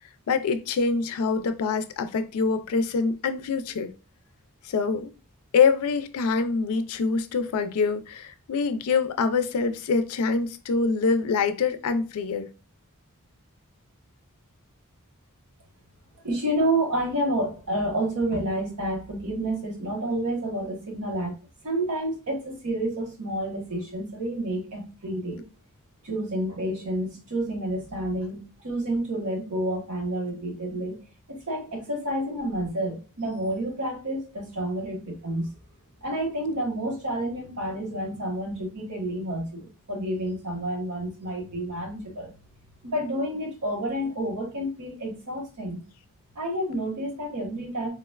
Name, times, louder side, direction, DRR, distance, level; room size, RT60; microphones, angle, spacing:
voice 1, 0.3-3.9 4.6-5.1 5.5-12.5, left 5 dB, 70° left, 0.4 m, -25 dB
voice 2, 16.2-21.3 21.6-25.4 26.0-31.0 31.3-35.5 36.0-42.3 42.8-45.8 46.3-47.9, right 1 dB, 75° right, 1.1 m, -29 dB
3.8 x 2.1 x 2.2 m
head